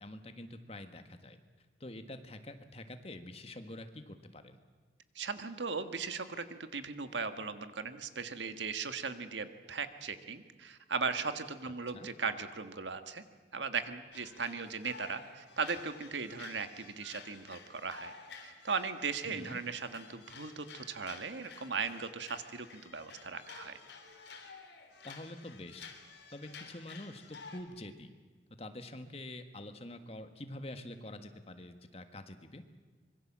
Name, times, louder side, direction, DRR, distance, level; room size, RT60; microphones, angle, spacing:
voice 1, 0.0-1.4 1.8-4.6 11.9-12.1 19.2-19.6 25.0-25.9 26.3-28.1 28.6-32.6, left 1 dB, 35° left, 8 dB, 1.6 m, -46 dB
voice 2, 5.1-13.2 13.5-18.1 18.4-23.8, right 5 dB, 85° right, 9 dB, 1.6 m, -38 dB
sound 1, 14.1-27.6, left 5 dB, 80° left, 3.6 m, -52 dB
25.0 x 23.0 x 7.4 m, 1.4 s
head